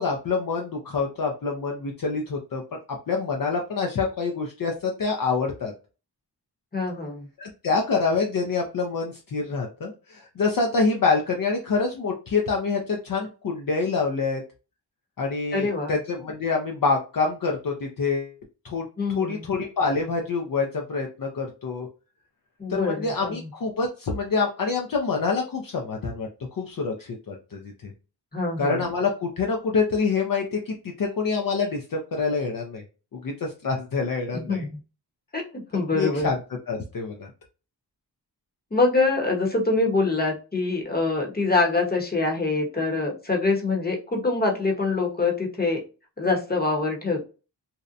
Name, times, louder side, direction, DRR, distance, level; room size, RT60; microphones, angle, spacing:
voice 1, 0.0-2.6 3.1-5.7 7.4-14.4 15.2-18.3 18.6-21.9 22.7-27.9 28.6-32.8 33.1-34.7 35.9-36.4 36.7-37.3, left 4 dB, 55° left, 2 dB, 0.5 m, -26 dB
voice 2, 6.7-7.2 15.5-15.9 19.0-19.5 22.6-23.5 28.3-28.8 34.3-34.7 35.3-36.3 38.7-45.8 46.2-47.2, left 3 dB, 20° left, 1 dB, 0.9 m, -25 dB
2.7 x 2.1 x 2.5 m, 0.33 s
wide cardioid pair, 60°, 42 cm